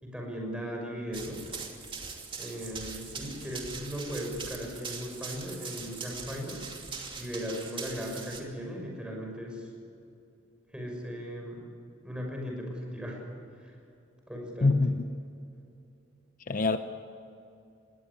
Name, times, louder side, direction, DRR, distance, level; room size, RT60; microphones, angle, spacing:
voice 1, 0.0-1.5 2.4-6.7 7.2-9.7 10.7-11.7 12.0-13.2 13.6-13.7 14.3-14.8, equal, 5° right, 0 dB, 6.3 m, -37 dB
Run, 1.1-8.4, right 5 dB, 25° right, 2.6 m, -41 dB
voice 2, 14.6-15.1 16.5-16.8, left 3 dB, 45° left, 9 dB, 0.7 m, -24 dB
20.5 x 18.0 x 9.7 m, 2.7 s
head